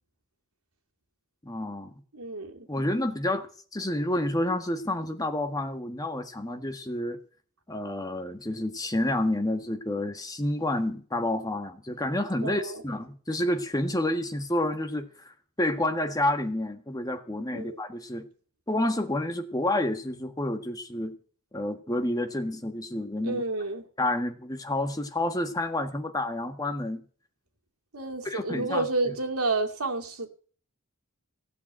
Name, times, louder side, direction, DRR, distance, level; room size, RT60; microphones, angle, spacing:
voice 1, 1.4-1.9 2.7-7.2 7.7-18.3 18.7-21.2 21.5-23.4 24.0-27.0 28.2-29.1, left 1 dB, 15° left, 7 dB, 1.5 m, -29 dB
voice 2, 2.1-2.7 12.4-12.8 17.5-17.8 23.2-23.8 27.9-30.3, right 3 dB, 85° right, 4 dB, 2.5 m, -30 dB
16.5 x 7.0 x 8.8 m, 0.43 s
head